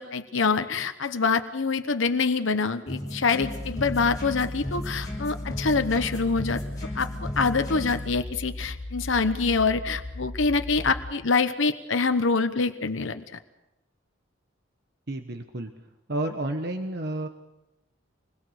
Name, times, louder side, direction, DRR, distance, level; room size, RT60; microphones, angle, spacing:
voice 1, 0.0-6.6 6.9-13.2, left 4 dB, 65° left, 9 dB, 1.0 m, -25 dB
sound 1, 2.9-8.1, left 1 dB, 20° left, 6.9 m, -36 dB
sound 2, 3.4-11.1, left 2 dB, 40° left, 0.8 m, -37 dB
voice 2, 15.1-15.7 16.1-17.3, right 1 dB, 50° right, 6 dB, 1.2 m, -30 dB
27.0 x 21.0 x 6.5 m, 0.93 s
head